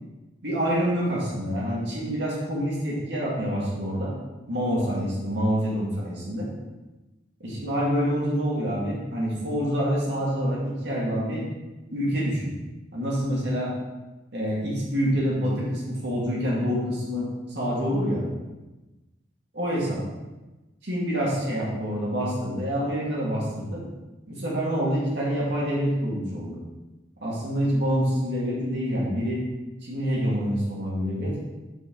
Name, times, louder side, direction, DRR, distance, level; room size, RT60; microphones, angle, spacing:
voice 1, 0.4-4.1 4.5-6.5 7.4-11.4 11.9-12.5 12.9-13.7 14.3-18.2 19.5-20.0 20.8-23.8 24.3-26.6 27.2-29.4 29.8-31.4, equal, 65° right, -5 dB, 2.1 m, -26 dB
7.5 x 4.2 x 4.0 m, 1.1 s
head